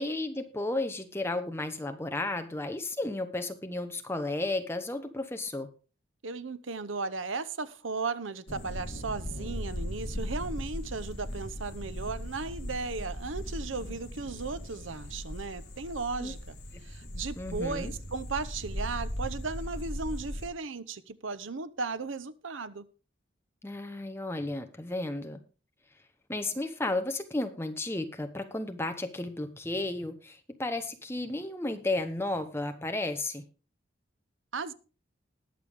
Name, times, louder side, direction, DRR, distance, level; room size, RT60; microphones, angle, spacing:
voice 1, 0.0-5.7 16.2-16.3 17.4-17.9 23.6-25.4 26.3-33.4, left 2 dB, 10° left, 6 dB, 1.0 m, -33 dB
voice 2, 6.2-16.6 16.8-22.9 34.5-34.7, right 4 dB, 85° right, 14 dB, 0.8 m, -36 dB
sound 1, 8.5-20.5, equal, 55° left, 3.0 m, -38 dB
20.0 x 7.0 x 3.6 m, 0.35 s
head